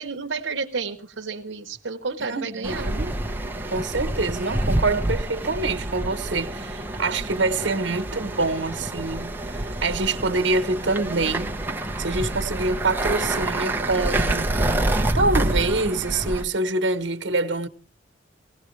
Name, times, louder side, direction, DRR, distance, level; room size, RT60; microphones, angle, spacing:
voice 1, 0.0-2.9, right 4 dB, 85° right, 0.9 m, -31 dB
voice 2, 2.3-3.1 3.7-11.5 12.0-14.5 15.1-17.7, right 3 dB, 65° right, 1.2 m, -25 dB
sound 1, 2.6-16.4, right 1 dB, 10° right, 0.8 m, -27 dB
18.0 x 17.5 x 3.3 m
head